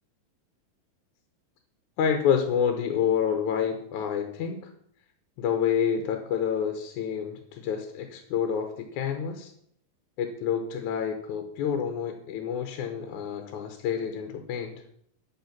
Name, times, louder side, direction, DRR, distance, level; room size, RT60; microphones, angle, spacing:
voice 1, 2.0-4.7 5.4-9.5 10.2-14.7, left 8 dB, 70° left, 6 dB, 2.1 m, -28 dB
10.0 x 8.6 x 5.8 m, 0.68 s
omnidirectional pair, 4.0 m